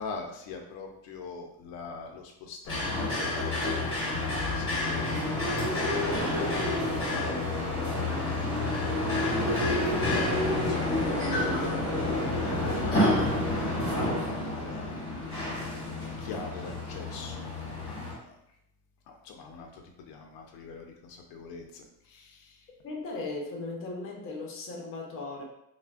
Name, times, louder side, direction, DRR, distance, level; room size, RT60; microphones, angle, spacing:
voice 1, 0.0-5.0 5.9-6.7 7.1-8.0 9.9-11.7 12.2-13.2 14.3-15.0 16.0-17.5 17.9-18.3 19.2-19.8 20.1-22.6, left 4 dB, 80° left, 2 dB, 0.5 m, -42 dB
sound 1, 2.7-18.1, left 1 dB, 15° left, 1.5 m, -29 dB
voice 2, 22.8-25.4, left 3 dB, 40° left, 0 dB, 0.6 m, -37 dB
3.2 x 2.1 x 2.3 m, 0.79 s
cardioid pair, 145°, 35 cm